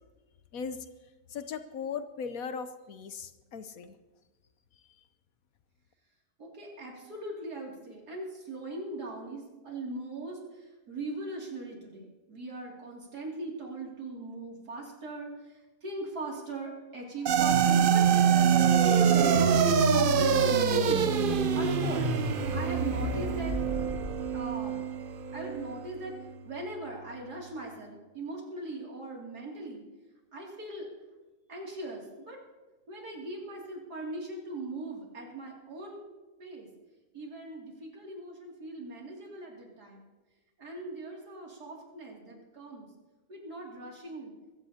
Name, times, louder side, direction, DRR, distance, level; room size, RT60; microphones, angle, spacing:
voice 1, 0.5-0.8 1.3-4.0, left 6 dB, 70° left, 10 dB, 1.1 m, -38 dB
voice 2, 6.4-18.1 18.8-19.6 19.9-22.1 22.5-23.6 24.3-24.8 25.3-26.2 26.4-29.8 30.3-30.9 31.5-32.4 32.9-36.0 36.4-36.7 37.1-40.1 40.6-42.9 43.3-44.3, right 2 dB, 90° right, -2 dB, 3.2 m, -39 dB
sound 1, 17.3-24.2, right 1 dB, 25° right, 2.9 m, -34 dB
sound 2, 17.3-25.8, right 8 dB, 60° right, 0.5 m, -25 dB
Piano, 19.3-27.4, left 3 dB, 40° left, 6.6 m, -37 dB
23.5 x 15.0 x 2.8 m, 1.2 s
omnidirectional pair, 1.6 m